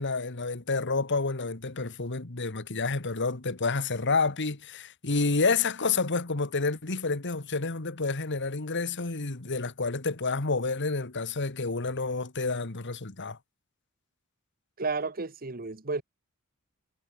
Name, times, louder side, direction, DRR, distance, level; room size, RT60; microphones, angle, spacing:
voice 1, 0.0-13.4, left 3 dB, 55° left, 1.7 m, -29 dB
voice 2, 14.8-16.0, right 4 dB, 40° right, 1.5 m, -32 dB
head